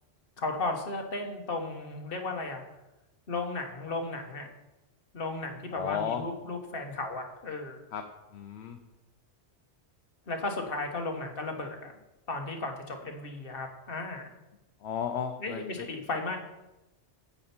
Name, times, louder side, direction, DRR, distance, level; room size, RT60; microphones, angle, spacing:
voice 1, 0.4-2.6 3.3-4.5 5.1-7.8 10.3-11.9 12.3-14.3 15.4-16.4, left 3 dB, 55° left, 3 dB, 1.4 m, -35 dB
voice 2, 5.7-6.2 7.9-8.0 8.3-8.8 14.8-15.9, left 8 dB, 70° left, 6 dB, 1.0 m, -34 dB
8.8 x 8.4 x 4.4 m, 0.99 s
omnidirectional pair, 1.2 m